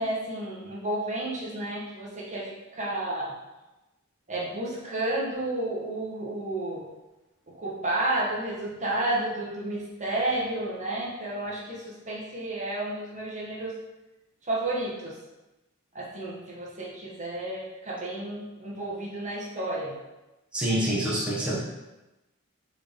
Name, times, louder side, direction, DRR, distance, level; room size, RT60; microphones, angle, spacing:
voice 1, 0.0-3.3 4.3-6.8 7.5-13.7 14.4-15.2 15.9-19.9, right 1 dB, 35° right, -5 dB, 1.6 m, -31 dB
voice 2, 20.5-21.6, right 1 dB, 5° right, -7 dB, 1.4 m, -26 dB
5.0 x 4.8 x 5.3 m, 1.0 s
head